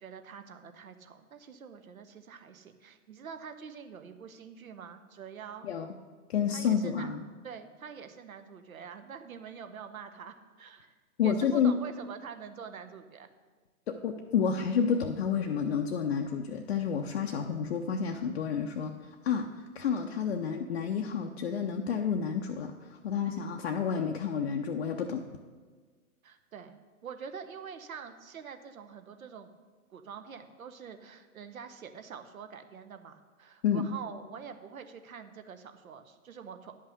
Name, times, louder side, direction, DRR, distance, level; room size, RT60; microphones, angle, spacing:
voice 1, 0.0-5.7 6.5-7.1 7.4-10.9 11.2-13.3 26.2-29.5 29.9-36.7, right 7 dB, 65° right, 8 dB, 1.0 m, -45 dB
voice 2, 6.3-7.2 11.2-11.7 13.9-19.0 19.2-19.5 19.7-25.2 33.6-33.9, left 7 dB, 45° left, 2 dB, 0.6 m, -30 dB
10.0 x 5.7 x 6.4 m, 1.5 s
figure-of-eight pair, 125°, 45 cm